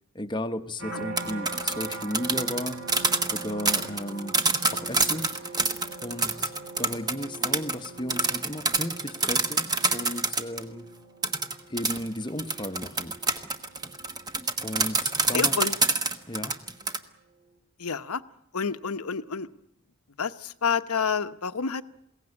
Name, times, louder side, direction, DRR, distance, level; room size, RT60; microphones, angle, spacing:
voice 1, 0.1-2.9 3.3-4.4 4.7-5.5 6.0-6.5 6.8-10.9 11.7-13.2 14.6-15.6 16.3-16.6, left 1 dB, 20° left, 1.0 m, -34 dB
sound 1, 0.8-16.0 16.5-16.9, right 3 dB, 55° right, 4.0 m, -43 dB
sound 2, 1.0-10.6 11.2-17.0, right 3 dB, 20° right, 1.3 m, -26 dB
voice 2, 15.3-15.8 17.8-18.2 18.5-19.5 20.2-21.8, left 6 dB, 90° left, 1.0 m, -28 dB
22.0 x 17.5 x 9.7 m
head